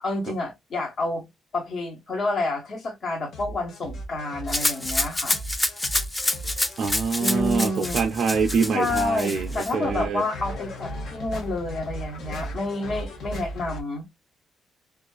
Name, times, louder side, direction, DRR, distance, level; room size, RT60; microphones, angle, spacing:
voice 1, 0.0-1.3 1.5-5.4 7.2-7.9 8.7-14.0, left 2 dB, 55° left, 1.1 m, -29 dB
sound 1, 3.3-13.8, right 1 dB, 70° left, 0.8 m, -36 dB
Rattle (instrument), 4.5-9.7, left 1 dB, 15° left, 0.4 m, -27 dB
voice 2, 6.8-10.2, right 5 dB, 65° right, 0.3 m, -25 dB
2.4 x 2.4 x 2.2 m
cardioid pair, 90°, 0 cm